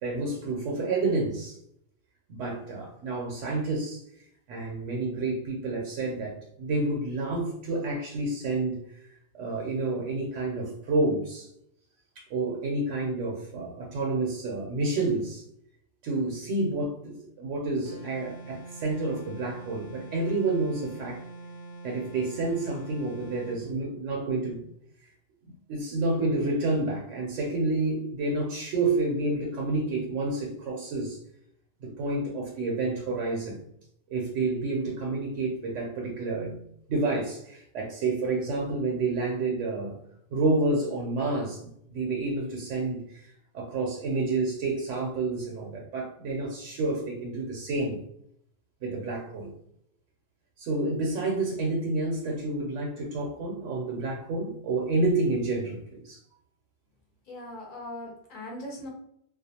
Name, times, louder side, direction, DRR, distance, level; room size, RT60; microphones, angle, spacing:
voice 1, 0.0-1.6 2.3-4.0 4.5-9.1 9.3-11.5 12.2-15.4 16.0-21.2 21.8-24.7 25.4-31.2 31.8-33.6 34.1-36.6 36.9-39.9 40.3-48.0 48.8-49.5 50.6-56.2, right 2 dB, 80° right, -1 dB, 0.9 m, -29 dB
sound 1, 17.8-23.6, right 2 dB, 90° left, 1.0 m, -44 dB
voice 2, 57.3-58.9, left 1 dB, 50° left, -1 dB, 0.9 m, -40 dB
2.4 x 2.2 x 2.7 m, 0.72 s
omnidirectional pair, 1.2 m